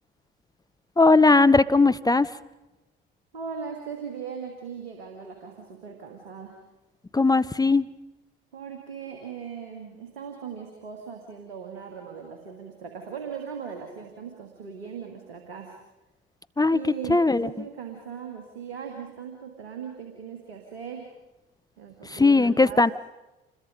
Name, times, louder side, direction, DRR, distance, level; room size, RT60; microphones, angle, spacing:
voice 1, 1.0-2.3 7.1-7.9 16.6-16.8 17.1-17.5 22.0-22.9, left 3 dB, 10° left, 14 dB, 0.8 m, -19 dB
voice 2, 3.3-6.6 8.5-15.8 16.7-21.1 21.8-22.8, right 6 dB, 85° right, 3 dB, 2.6 m, -39 dB
27.5 x 21.5 x 5.3 m, 1.0 s
hypercardioid pair, 60°, 30 cm